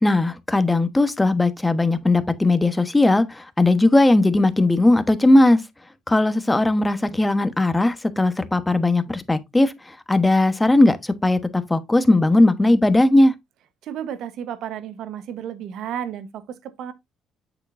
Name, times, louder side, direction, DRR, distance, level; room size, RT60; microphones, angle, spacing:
voice 1, 0.0-5.6 6.1-13.3, left 2 dB, 15° left, 1.2 m, -18 dB
voice 2, 13.8-16.9, right 9 dB, 70° right, 1.1 m, -32 dB
8.0 x 6.6 x 2.6 m
supercardioid pair, 70°, 0 cm